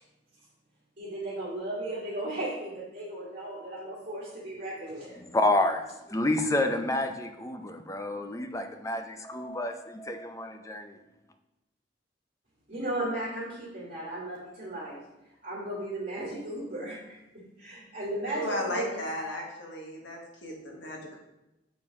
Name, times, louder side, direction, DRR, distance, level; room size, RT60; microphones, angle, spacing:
voice 1, 1.0-5.2 12.7-15.0 15.4-17.2 17.6-19.0, right 1 dB, 45° right, -9 dB, 2.3 m, -35 dB
voice 2, 5.2-11.0, left 1 dB, 15° left, 6 dB, 0.5 m, -29 dB
voice 3, 18.3-21.2, left 1 dB, 75° left, 0 dB, 1.4 m, -35 dB
6.9 x 5.1 x 3.5 m, 0.97 s
head